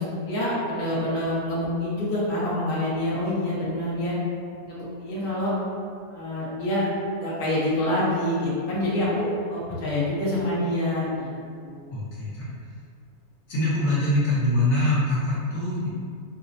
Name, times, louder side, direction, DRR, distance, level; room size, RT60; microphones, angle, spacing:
voice 1, 0.0-4.1 4.7-5.5 6.1-6.9 7.2-11.3 11.6-12.0, left 1 dB, 45° left, -8 dB, 0.9 m, -26 dB
voice 2, 11.9-12.5 13.5-15.9, left 1 dB, 75° left, -7 dB, 1.3 m, -24 dB
4.9 x 2.0 x 2.6 m, 2.2 s
omnidirectional pair, 1.6 m